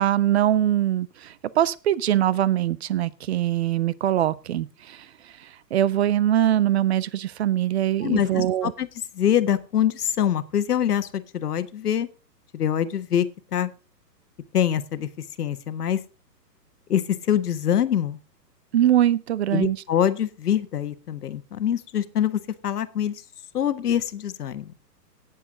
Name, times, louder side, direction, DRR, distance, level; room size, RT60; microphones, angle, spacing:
voice 1, 0.0-5.1 5.7-8.7 18.7-19.8, right 12 dB, 40° right, 21 dB, 0.6 m, -22 dB
voice 2, 8.0-8.9 9.1-12.1 12.5-13.7 14.5-16.0 16.9-18.2 19.5-23.2 23.5-24.7, left 10 dB, 65° left, 12 dB, 1.5 m, -24 dB
18.0 x 7.3 x 3.8 m, 0.30 s
hypercardioid pair, 140°, 49 cm